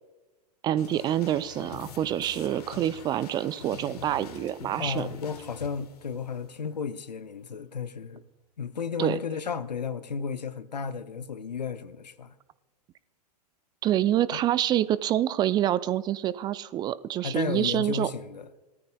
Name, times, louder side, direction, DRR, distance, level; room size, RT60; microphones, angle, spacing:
voice 1, 0.6-5.1 9.0-9.2 13.8-18.1, right 12 dB, 20° right, 0.3 m, -27 dB
sound 1, 0.7-6.8, left 7 dB, 65° left, 1.4 m, -44 dB
voice 2, 4.8-8.2 8.6-12.3 14.3-14.4 17.2-18.5, left 6 dB, 85° left, 0.7 m, -33 dB
19.0 x 13.5 x 2.2 m
figure-of-eight pair, 100°, 21 cm